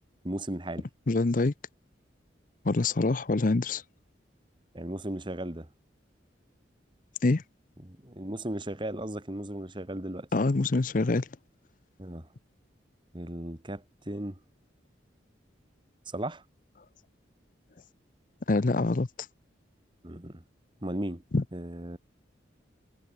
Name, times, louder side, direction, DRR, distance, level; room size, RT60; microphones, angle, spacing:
voice 1, 0.2-0.9 4.7-5.7 7.8-10.3 12.0-12.3 13.1-14.4 16.1-16.4 20.0-20.4 20.8-21.2 21.5-22.0, right 1 dB, 25° right, 1.7 m, -36 dB
voice 2, 1.1-1.5 2.6-3.8 7.2-7.4 10.3-11.3 18.5-19.1 21.3-21.4, left 3 dB, 45° left, 0.6 m, -25 dB
head